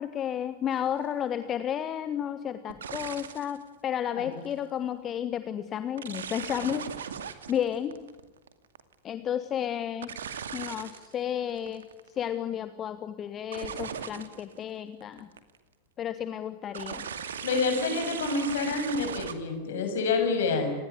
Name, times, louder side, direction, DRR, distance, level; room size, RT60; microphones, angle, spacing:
voice 1, 0.0-6.9 7.5-7.9 9.0-10.1 10.5-11.9 12.2-15.3 16.0-17.1, left 9 dB, 30° left, 11 dB, 1.5 m, -32 dB
sound 1, 0.7-0.9 2.7-3.6 4.3-4.6 6.0-8.9 10.0-11.1 11.5-12.1 13.5-14.6 15.0-15.6 16.7-19.3, right 7 dB, 65° right, 2.3 m, -38 dB
voice 2, 17.4-20.7, left 4 dB, 60° left, 6 dB, 7.1 m, -28 dB
28.5 x 20.5 x 9.6 m, 1.1 s
figure-of-eight pair, 90°, 0 cm